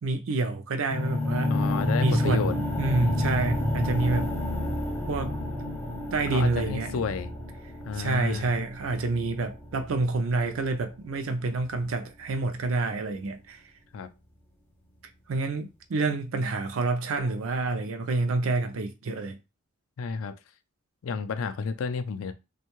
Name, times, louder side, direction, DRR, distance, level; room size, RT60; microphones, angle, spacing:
voice 1, 0.0-1.6 2.0-4.3 5.1-5.4 6.1-7.1 7.9-13.6 15.3-19.4, right 3 dB, 70° right, 0.4 m, -28 dB
sound 1, 0.9-10.9, left 1 dB, 10° left, 0.5 m, -30 dB
voice 2, 1.5-2.5 6.3-7.3 7.8-8.5 13.9-14.1 20.0-20.3 21.0-22.3, left 5 dB, 70° left, 0.4 m, -31 dB
2.6 x 2.2 x 2.9 m
head